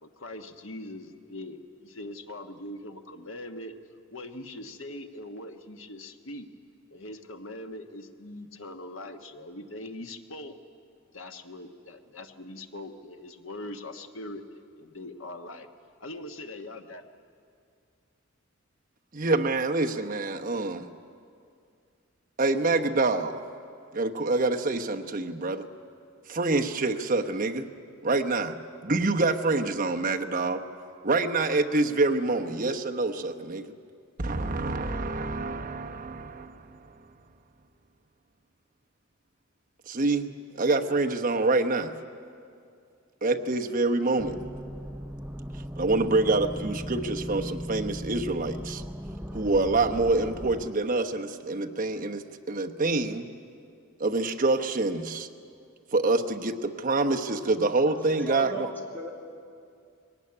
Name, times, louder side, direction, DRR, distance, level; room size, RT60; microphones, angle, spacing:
voice 1, 0.0-3.7 4.1-6.5 6.9-10.5 11.1-14.4 14.8-15.7 16.0-17.1, left 1 dB, 75° left, 6 dB, 1.3 m, -41 dB
voice 2, 19.1-20.9 22.4-23.4 23.9-25.7 26.3-27.7 28.0-28.6 28.8-30.6 31.0-33.7 34.2-36.8 39.9-40.3 40.6-41.9 43.2-44.4 45.8-48.8 49.3-53.2 54.0-55.3 55.9-58.7, right 3 dB, 40° right, 4 dB, 1.0 m, -26 dB
sound 1, 44.2-50.7, equal, 10° right, 0.6 m, -37 dB
voice 3, 58.0-59.1, right 2 dB, 10° left, 0 dB, 2.7 m, -37 dB
21.5 x 18.0 x 9.7 m, 2.4 s
head